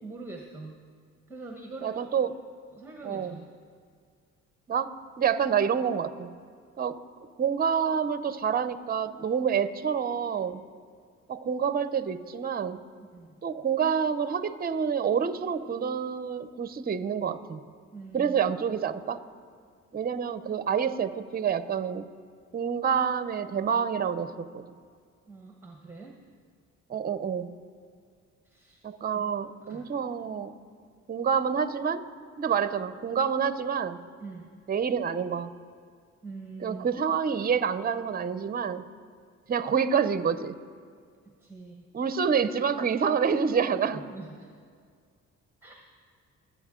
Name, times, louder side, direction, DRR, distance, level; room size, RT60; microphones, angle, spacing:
voice 1, 0.0-0.8 1.3-2.3 2.7-3.5 13.0-13.4 17.9-18.4 25.3-26.1 28.4-28.8 29.1-29.2 29.7-29.8 34.2-34.5 36.2-36.9 41.3-41.9 43.9-44.5 45.6-45.8, right 3 dB, 10° right, 1 dB, 1.1 m, -44 dB
voice 2, 1.8-2.3 3.0-3.4 4.7-4.9 5.2-6.4 6.8-7.0 7.4-10.6 11.3-12.8 13.4-17.6 18.1-19.2 19.9-22.1 22.5-24.7 26.9-27.5 28.8-30.5 31.1-32.0 32.4-34.0 34.7-35.5 36.6-38.8 39.5-40.6 41.9-44.1, right 7 dB, 30° right, 13 dB, 0.6 m, -28 dB
24.0 x 8.4 x 3.7 m, 2.1 s
cardioid pair, 90°, 30 cm